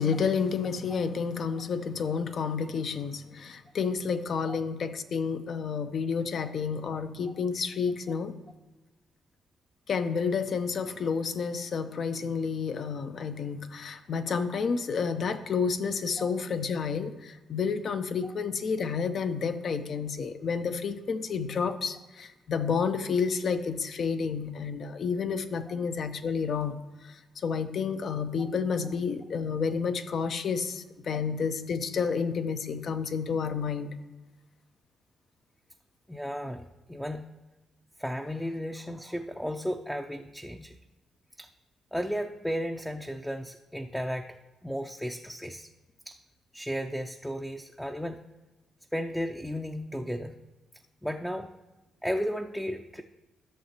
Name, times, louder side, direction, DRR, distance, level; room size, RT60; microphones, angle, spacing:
voice 1, 0.0-8.3 9.9-34.0, left 5 dB, 60° left, 9 dB, 0.7 m, -30 dB
voice 2, 36.1-37.3 38.0-40.7 41.4-41.5 41.9-44.4 44.6-45.7 46.1-46.2 46.5-48.2 48.9-50.4 51.0-51.5 52.0-53.0, equal, 5° left, 4 dB, 0.6 m, -34 dB
13.5 x 6.5 x 3.0 m, 1.1 s
supercardioid pair, 55°, 0 cm